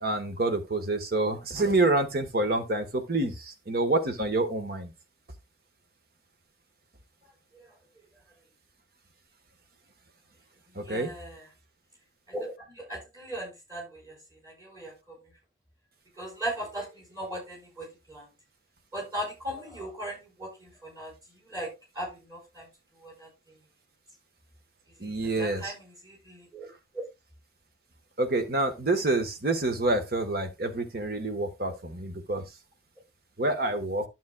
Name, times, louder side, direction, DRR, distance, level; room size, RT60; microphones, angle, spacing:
voice 1, 0.0-4.9 10.8-11.1 25.0-25.7 28.2-32.4 33.4-34.0, right 2 dB, 55° right, 1.3 m, -27 dB
voice 2, 10.7-11.5 12.3-15.2 16.2-18.3 18.9-22.7 22.9-23.6 25.0-26.7 26.9-27.0 32.3-32.4, right 1 dB, 20° right, 5.4 m, -39 dB
12.5 x 7.3 x 2.3 m
head